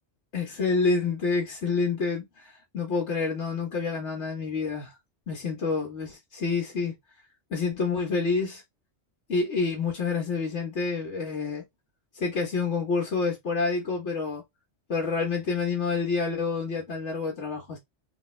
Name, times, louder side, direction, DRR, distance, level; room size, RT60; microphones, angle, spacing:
voice 1, 0.3-5.0 5.3-7.0 7.5-8.6 9.3-11.6 12.1-14.4 14.9-17.8, left 4 dB, 80° left, 1.5 m, -28 dB
3.5 x 3.5 x 3.2 m
omnidirectional pair, 1.2 m